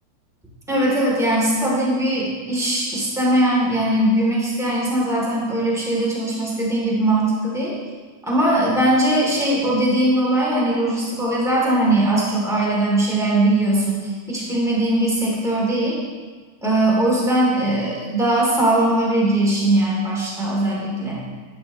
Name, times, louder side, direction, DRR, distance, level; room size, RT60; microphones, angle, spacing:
voice 1, 0.7-7.7 8.2-16.0 16.6-21.2, right 1 dB, ahead, -5 dB, 0.9 m, -20 dB
14.0 x 11.0 x 3.0 m, 1.4 s
omnidirectional pair, 5.5 m